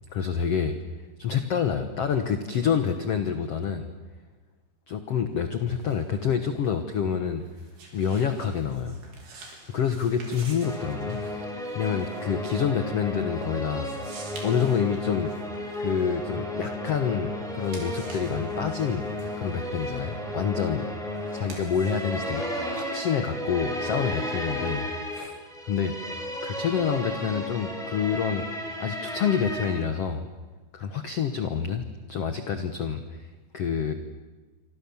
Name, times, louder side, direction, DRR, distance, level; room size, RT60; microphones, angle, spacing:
voice 1, 0.1-0.8 1.2-3.9 4.9-7.5 7.9-9.0 9.7-11.2 11.7-13.9 14.4-15.3 15.8-19.1 19.4-20.9 21.3-22.4 22.7-24.9 25.1-25.4 25.6-28.5 28.8-30.3 30.7-33.9, left 7 dB, 65° left, 7 dB, 1.5 m, -27 dB
sound 1, 5.3-17.0 17.4-23.5, right 3 dB, 70° right, 6.3 m, -49 dB
sound 2, 10.6-29.8, left 1 dB, ahead, 5.1 m, -34 dB
27.5 x 25.5 x 7.2 m, 1.3 s
omnidirectional pair, 4.6 m